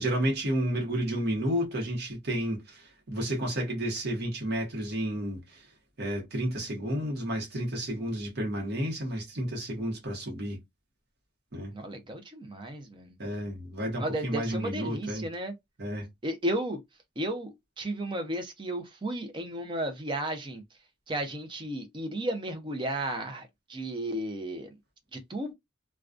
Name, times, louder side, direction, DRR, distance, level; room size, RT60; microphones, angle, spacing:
voice 1, 0.0-5.7 6.0-10.6 11.5-11.7 13.2-15.3 15.8-16.1, right 1 dB, 50° right, 0.9 m, -31 dB
voice 2, 11.7-13.1 14.0-15.5 16.2-16.8 17.2-20.6 21.1-24.7 25.1-25.5, right 1 dB, 25° right, 0.5 m, -34 dB
2.2 x 2.2 x 2.5 m
head